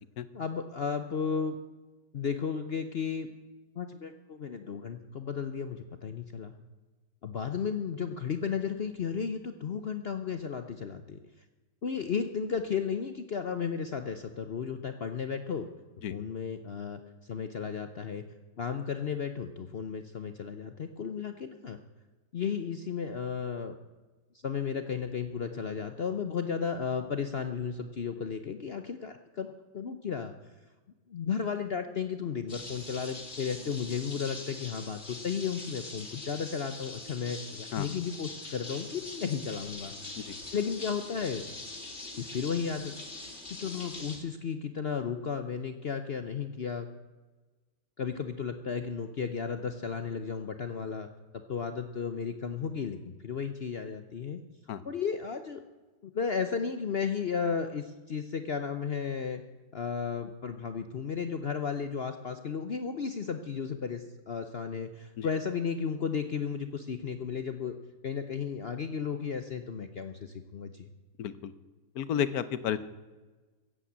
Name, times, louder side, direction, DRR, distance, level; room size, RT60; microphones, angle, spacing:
voice 1, 0.3-1.6 2.1-3.3 3.8-6.5 7.2-11.2 11.8-15.7 16.1-17.0 17.3-18.2 18.6-21.8 22.3-23.8 24.4-30.3 31.1-39.9 40.5-41.5 42.2-42.9 43.5-46.9 48.0-51.1 51.5-54.4 54.8-55.6 56.0-59.4 59.7-67.8 68.0-70.9, left 6 dB, 80° left, 8 dB, 0.5 m, -34 dB
sound 1, 32.5-44.2, left 2 dB, 35° left, 2.5 m, -43 dB
voice 2, 71.2-71.5 71.9-72.8, left 9 dB, 60° left, 15 dB, 1.1 m, -32 dB
15.5 x 8.6 x 8.2 m, 1.2 s
omnidirectional pair, 2.1 m